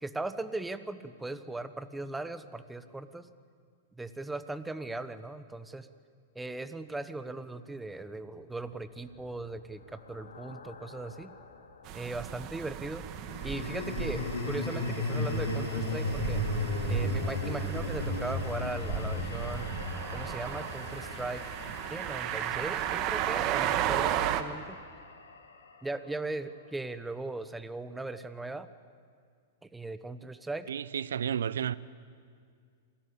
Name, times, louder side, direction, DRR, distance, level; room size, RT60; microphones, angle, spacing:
voice 1, 0.0-3.3 3.9-5.9 6.3-11.3 11.9-13.1 13.4-16.4 16.9-19.7 20.1-21.4 21.9-24.8 25.8-28.7 29.6-30.7, right 2 dB, 10° right, 1.1 m, -38 dB
sound 1, 9.1-11.6 13.2-25.5, left 2 dB, 85° left, 2.7 m, -36 dB
sound 2, 11.8-24.4, right 11 dB, 40° right, 1.4 m, -35 dB
voice 2, 30.7-31.7, right 9 dB, 80° right, 0.7 m, -31 dB
26.5 x 17.5 x 8.5 m
hypercardioid pair, 110°, 0 cm